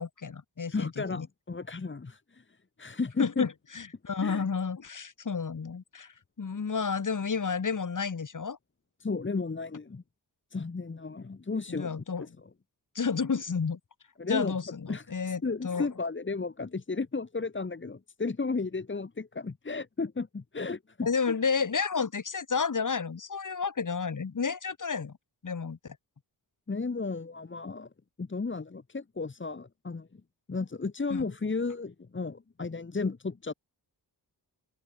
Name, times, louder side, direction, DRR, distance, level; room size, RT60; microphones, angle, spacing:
voice 1, 0.0-1.3 3.2-6.1 6.4-8.6 11.7-12.2 12.9-13.8 14.2-15.9 21.0-25.1 25.4-26.0 31.1-31.3, left 5 dB, 50° left, 4.5 m, -31 dB
voice 2, 0.7-2.4 2.8-3.5 4.2-4.4 9.0-10.0 10.5-12.3 14.2-14.6 14.9-21.1 26.7-27.9 28.2-30.2 30.5-33.5, left 4 dB, 30° left, 1.9 m, -34 dB
open air
wide cardioid pair, 95°, 41 cm